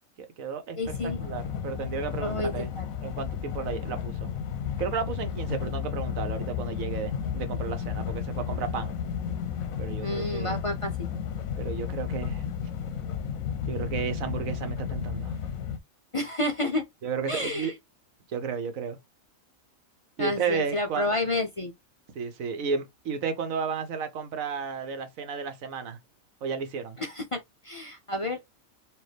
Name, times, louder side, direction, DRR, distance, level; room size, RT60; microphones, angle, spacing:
voice 1, 0.2-2.7 3.0-4.3 4.8-8.9 9.8-10.7 11.6-12.4 13.7-15.4 17.0-17.7 18.3-19.0 20.2-21.1 22.1-26.0 26.4-27.0, right 6 dB, 75° right, 1.2 m, -33 dB
sound 1, 0.8-15.8, left 8 dB, 85° left, 1.1 m, -33 dB
voice 2, 0.8-1.2 2.2-2.9 10.0-10.9 16.1-16.8 17.3-17.7 20.2-21.7 27.0-28.4, left 1 dB, 55° left, 0.3 m, -30 dB
4.4 x 2.6 x 3.3 m
omnidirectional pair, 1.4 m